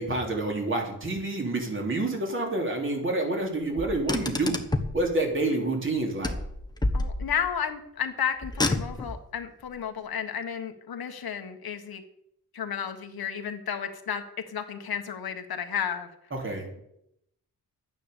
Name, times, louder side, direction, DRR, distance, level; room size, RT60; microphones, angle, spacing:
voice 1, 0.0-4.6 4.9-6.3 16.3-16.7, right 2 dB, 35° right, 1 dB, 3.2 m, -28 dB
Car, 3.8-5.0 6.2-7.6 8.4-9.2, left 2 dB, 10° left, 1.0 m, -29 dB
voice 2, 6.9-12.0 12.5-16.1, left 8 dB, 85° left, 6 dB, 1.5 m, -32 dB
12.0 x 9.4 x 7.0 m, 0.78 s
wide cardioid pair, 160°, 36 cm